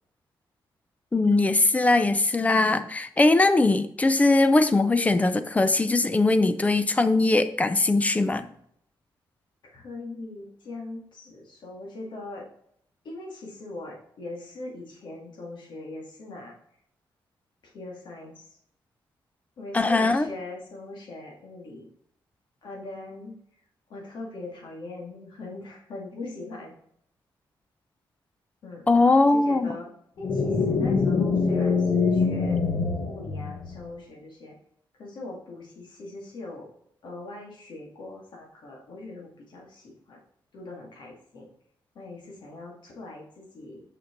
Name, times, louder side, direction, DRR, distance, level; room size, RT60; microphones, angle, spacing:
voice 1, 1.1-8.5 19.7-20.3 28.9-29.7, left 2 dB, 15° left, 11 dB, 0.4 m, -21 dB
voice 2, 9.7-12.5 13.0-16.5 17.6-18.4 19.6-21.9 22.6-23.4 23.9-26.7 28.6-29.9 30.2-32.6 33.1-34.5 35.0-36.7 37.0-40.2 40.5-41.5 42.0-43.8, left 2 dB, 65° left, -1 dB, 2.2 m, -41 dB
sound 1, 30.2-33.9, left 4 dB, 50° left, 1.3 m, -24 dB
6.1 x 6.0 x 3.9 m, 0.69 s
wide cardioid pair, 155°, 9 cm